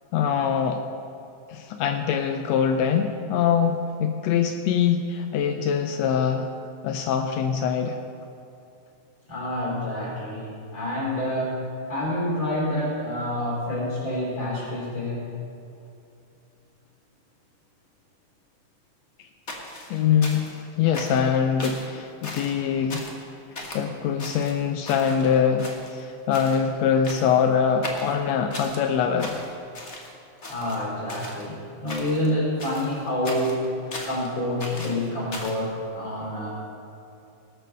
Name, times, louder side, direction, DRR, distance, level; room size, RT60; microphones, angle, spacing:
voice 1, 0.1-0.8 1.5-6.5 6.8-8.0 19.9-23.1 23.7-29.4, left 7 dB, 80° left, 6 dB, 1.5 m, -23 dB
voice 2, 9.3-11.6 11.9-15.3 30.5-33.6 34.0-36.5, left 1 dB, 25° left, -4 dB, 4.3 m, -28 dB
sound 1, 19.5-20.6 20.9-21.3 21.6-21.9 22.2-22.6 22.9-23.2 23.5-23.8 24.2-25.3 25.6-26.1 26.3-26.6 27.0-27.4 27.8-28.8 29.2-30.1 30.4-31.5 31.9-32.3 32.6-34.3 34.6-35.6, left 1 dB, 45° left, 0.8 m, -37 dB
19.0 x 6.8 x 6.6 m, 2.6 s
omnidirectional pair, 3.7 m